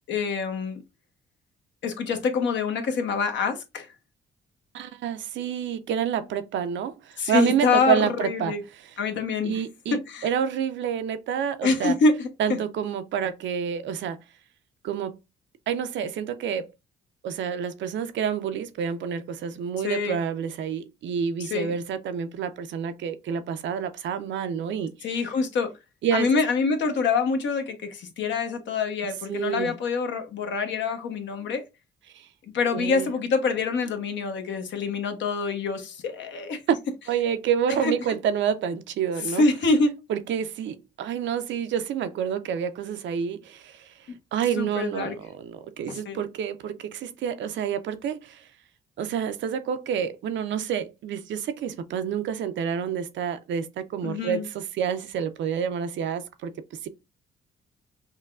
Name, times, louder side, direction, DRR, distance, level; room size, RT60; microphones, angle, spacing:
voice 1, 0.1-0.8 1.8-3.9 7.2-8.6 9.0-9.5 9.9-10.3 11.6-12.6 19.8-20.2 21.4-21.7 25.0-25.7 26.1-31.6 32.5-36.6 37.8-37.9 39.3-40.0 44.1-44.2 44.6-45.2 45.9-46.2 54.0-54.5, left 4 dB, 65° left, 0.9 m, -26 dB
voice 2, 4.7-8.5 9.4-12.0 12.4-14.2 14.8-15.2 15.7-16.7 17.2-24.9 26.0-26.3 29.3-29.7 32.1-32.3 32.7-33.1 37.1-39.4 40.1-43.9 44.3-48.5 49.0-56.9, right 8 dB, 70° right, 0.5 m, -28 dB
5.5 x 2.2 x 2.3 m
cardioid pair, 90°, 20 cm